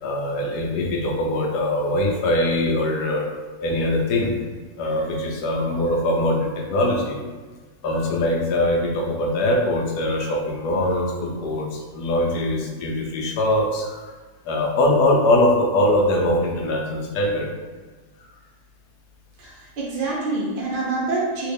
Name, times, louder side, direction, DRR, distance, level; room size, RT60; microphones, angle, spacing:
voice 1, 0.0-3.2 3.6-4.3 4.8-7.2 7.8-14.1 14.4-17.5, left 1 dB, 85° left, 1 dB, 1.2 m, -22 dB
voice 2, 19.4-21.5, right 3 dB, 60° right, -5 dB, 0.5 m, -26 dB
3.2 x 2.8 x 3.4 m, 1.4 s
omnidirectional pair, 1.7 m